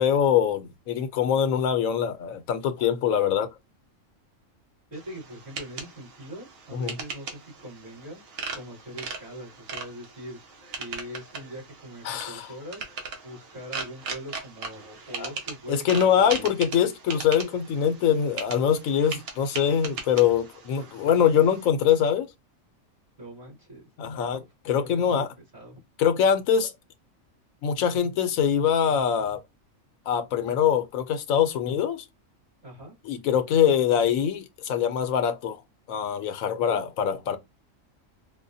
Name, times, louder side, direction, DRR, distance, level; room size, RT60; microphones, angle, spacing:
voice 1, 0.0-3.5 6.7-6.9 12.0-12.5 15.2-15.3 15.7-22.3 24.0-24.4 24.7-25.3 26.0-26.7 27.6-29.4 30.1-32.0 33.0-35.6 35.9-37.4, left 8 dB, 85° left, 1.1 m, -23 dB
voice 2, 4.9-8.2 8.5-10.4 10.8-16.5 23.2-23.9 24.1-25.3 25.5-25.8 32.6-32.9, equal, 55° right, 2.9 m, -42 dB
sound 1, 4.9-21.7, right 4 dB, 75° right, 1.3 m, -39 dB
4.9 x 2.1 x 2.6 m
omnidirectional pair, 1.4 m